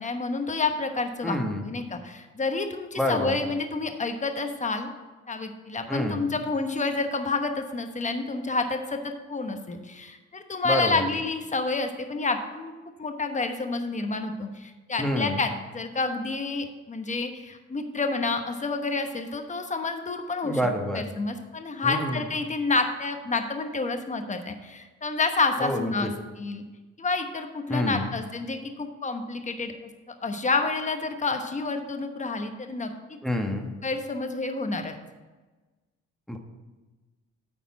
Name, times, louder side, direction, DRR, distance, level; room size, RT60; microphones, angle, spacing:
voice 1, 0.0-1.4 1.6-4.9 5.3-12.7 13.0-20.6 20.9-26.1 26.4-26.6 27.0-29.7 30.2-32.9 33.8-34.9, left 3 dB, 25° left, 6 dB, 1.0 m, -29 dB
voice 2, 1.2-1.7 3.0-3.4 5.9-6.3 10.6-11.1 15.0-15.4 20.4-21.1 21.8-22.2 25.6-26.1 27.7-28.1 33.2-33.7 36.3-36.4, left 1 dB, ahead, 3 dB, 1.2 m, -28 dB
9.5 x 4.2 x 7.1 m, 1.2 s
cardioid pair, 90°, 30 cm